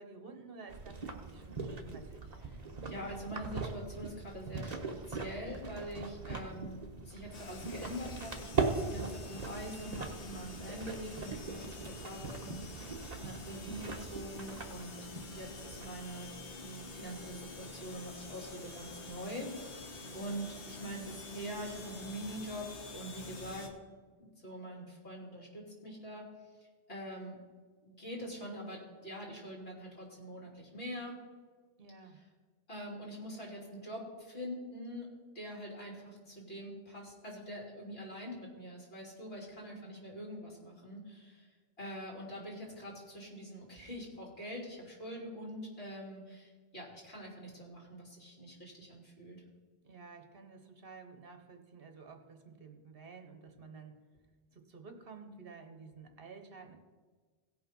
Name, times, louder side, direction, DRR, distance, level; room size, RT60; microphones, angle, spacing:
voice 1, 0.0-2.4 15.0-15.5 20.0-20.3 31.8-32.2 39.7-40.2 49.8-53.9 54.5-56.8, right 4 dB, 60° right, 6 dB, 1.4 m, -52 dB
sound 1, 0.7-16.2, right 4 dB, 40° right, 1.1 m, -40 dB
voice 2, 2.4-4.8 5.0-12.6 13.2-15.0 15.3-23.7 24.2-26.3 26.6-27.4 27.8-31.2 32.2-32.3 32.7-49.4, equal, 65° left, -2 dB, 3.3 m, -44 dB
sound 2, 7.3-23.7, left 3 dB, 90° left, 1.5 m, -48 dB
16.5 x 5.7 x 5.4 m, 1.4 s
omnidirectional pair, 1.1 m